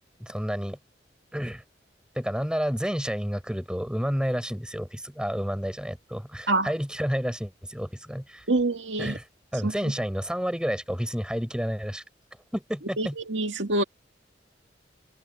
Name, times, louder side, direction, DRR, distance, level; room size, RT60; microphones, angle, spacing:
voice 1, 0.2-0.8 1.3-1.6 2.1-8.4 9.0-9.2 9.5-12.0 12.5-13.1, equal, 5° right, 4.8 m, -30 dB
voice 2, 8.5-9.2 9.6-9.7 13.0-13.8, right 2 dB, 85° right, 2.0 m, -26 dB
head